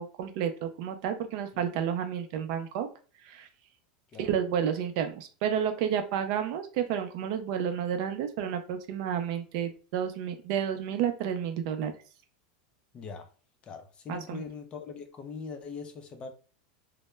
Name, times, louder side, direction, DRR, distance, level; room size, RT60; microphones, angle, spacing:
voice 1, 0.0-2.9 3.3-3.5 4.2-11.9 14.1-14.4, right 8 dB, 55° right, 0.4 m, -31 dB
voice 2, 12.9-13.3 13.6-16.3, left 5 dB, 25° left, 0.4 m, -41 dB
2.0 x 2.0 x 3.2 m
supercardioid pair, 150°, 4 cm